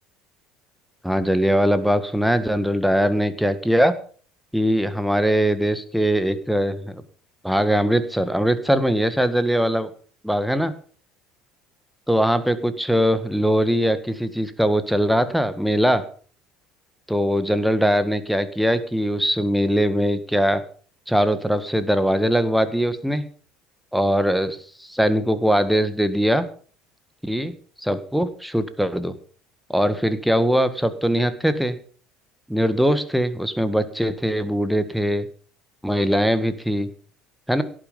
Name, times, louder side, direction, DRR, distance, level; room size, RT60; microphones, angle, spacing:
voice 1, 1.0-3.9 4.5-7.0 7.4-9.9 10.2-10.7 12.1-16.0 17.1-20.6 21.1-23.2 23.9-26.4 27.2-27.5 27.8-29.1 29.7-31.8 32.5-35.3 35.8-36.9 37.5-37.6, equal, ahead, 11 dB, 1.7 m, -21 dB
17.5 x 9.1 x 5.4 m, 0.43 s
figure-of-eight pair, 60°, 0 cm